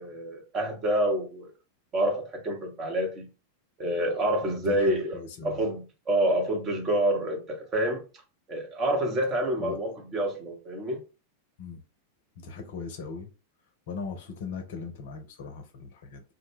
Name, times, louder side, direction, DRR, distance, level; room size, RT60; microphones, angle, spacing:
voice 1, 0.0-1.5 1.9-3.3 3.8-5.2 5.4-8.0 8.5-11.0, right 1 dB, 30° right, 0.9 m, -27 dB
voice 2, 4.4-5.6 9.6-9.8 11.6-11.8 12.4-13.3 13.9-16.2, left 5 dB, 55° left, 0.6 m, -39 dB
2.2 x 2.2 x 3.1 m
figure-of-eight pair, 90°, 0 cm